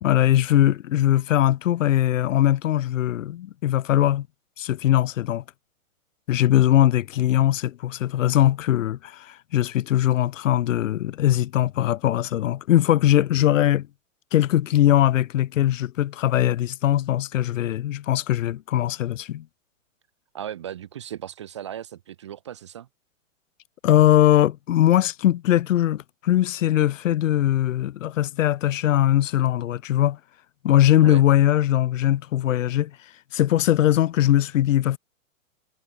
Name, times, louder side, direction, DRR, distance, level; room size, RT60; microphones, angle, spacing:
voice 1, 0.0-4.3 4.6-5.4 6.3-13.9 14.3-19.4 23.8-30.2 30.6-32.9 33.3-35.0, left 12 dB, 70° left, 0.8 m, -20 dB
voice 2, 20.3-22.9 31.0-31.2, right 10 dB, 25° right, 0.5 m, -36 dB
hypercardioid pair, 170°, 40 cm